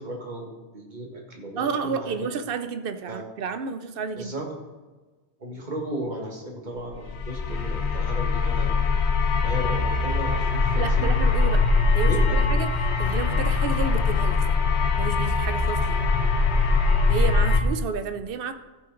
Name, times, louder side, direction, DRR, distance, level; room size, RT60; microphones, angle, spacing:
voice 1, 0.0-2.2 3.1-3.2 4.2-4.5 5.4-8.7 9.4-11.1 12.1-12.4, right 1 dB, 40° right, 0 dB, 1.8 m, -35 dB
voice 2, 1.6-4.3 10.7-11.6 11.9-12.7 13.0-14.6 15.0-16.0 17.1-18.5, right 6 dB, 55° right, 9 dB, 0.8 m, -31 dB
The tube., 6.9-17.6, left 4 dB, 70° left, 1.2 m, -22 dB
14.5 x 5.7 x 3.9 m, 1.3 s
omnidirectional pair, 1.2 m